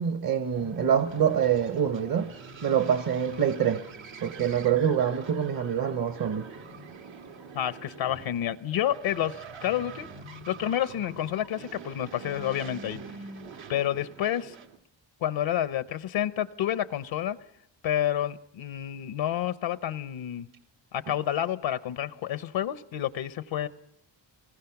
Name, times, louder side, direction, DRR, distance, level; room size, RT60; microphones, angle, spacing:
voice 1, 0.0-2.3 2.6-3.8 4.2-6.5, right 8 dB, 50° right, 1.1 m, -25 dB
sound 1, 0.5-14.8, right 4 dB, 80° right, 1.7 m, -45 dB
voice 2, 7.5-10.1 10.5-13.0 13.7-14.5 15.2-17.4 17.8-20.5 20.9-23.7, left 11 dB, 80° left, 0.8 m, -29 dB
25.0 x 20.0 x 5.9 m
cardioid pair, 65°, 46 cm